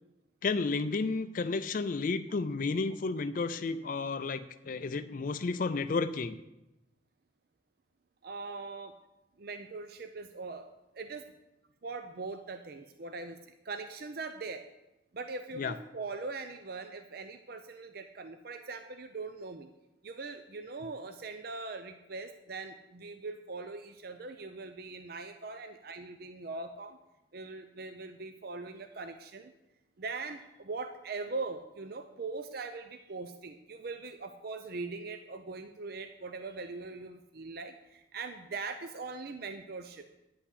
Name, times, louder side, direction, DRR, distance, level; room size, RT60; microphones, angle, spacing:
voice 1, 0.4-6.4 15.6-15.7, left 4 dB, 45° left, 11 dB, 0.4 m, -32 dB
voice 2, 8.2-8.9 9.4-11.3 11.8-13.4 13.7-14.6 15.1-19.7 20.0-27.0 27.3-29.5 30.0-40.0, right 3 dB, 55° right, 7 dB, 0.6 m, -41 dB
9.7 x 5.8 x 8.2 m, 0.92 s
head